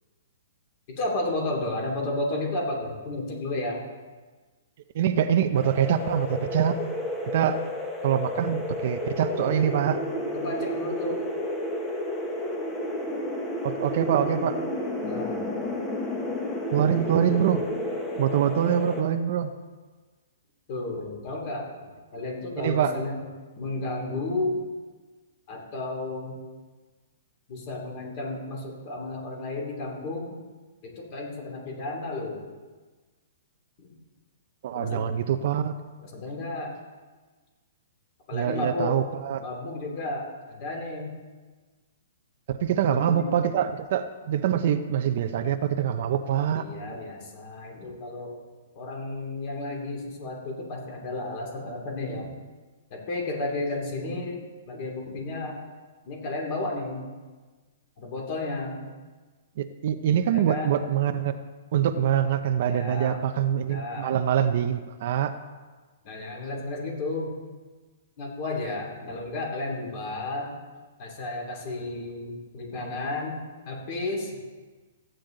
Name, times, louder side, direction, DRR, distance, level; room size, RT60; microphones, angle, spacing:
voice 1, 1.0-3.8 10.3-11.2 15.0-15.5 20.7-23.2 23.6-24.6 25.5-26.4 27.5-30.4 30.8-32.4 33.8-33.9 34.7-35.0 36.0-36.7 38.3-39.0 39.4-41.1 42.7-43.4 45.2-45.4 46.5-48.3 48.7-52.3 52.9-55.6 56.0-57.0 58.0-58.8 60.3-60.8 61.1-61.2 62.6-63.2 63.7-64.1 66.0-67.3 68.2-70.6 71.0-73.4 73.7-74.4, left 2 dB, 35° left, 0 dB, 2.9 m, -32 dB
voice 2, 4.9-6.8 7.3-7.6 8.0-10.0 13.6-14.6 16.7-17.7 18.2-19.5 22.6-22.9 34.6-35.7 38.3-39.4 42.5-46.6 59.6-61.3 61.7-65.3, right 9 dB, 45° right, 9 dB, 0.6 m, -24 dB
sound 1, 5.5-19.0, left 1 dB, 10° left, 1.3 m, -31 dB
14.5 x 9.0 x 3.9 m, 1.4 s
hypercardioid pair, 165°, 0 cm